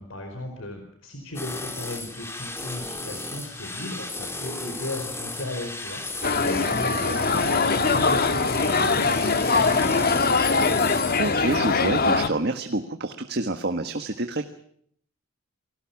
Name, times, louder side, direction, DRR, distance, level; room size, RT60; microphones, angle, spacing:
voice 1, 0.0-10.7, left 1 dB, 65° left, 4 dB, 4.9 m, -36 dB
sound 1, 1.3-11.4, left 2 dB, 10° left, 3.4 m, -35 dB
sound 2, 6.2-12.3, left 4 dB, 45° left, 1.5 m, -22 dB
voice 2, 11.2-14.4, right 2 dB, 50° right, 6 dB, 1.6 m, -27 dB
29.5 x 21.0 x 6.1 m, 0.65 s
head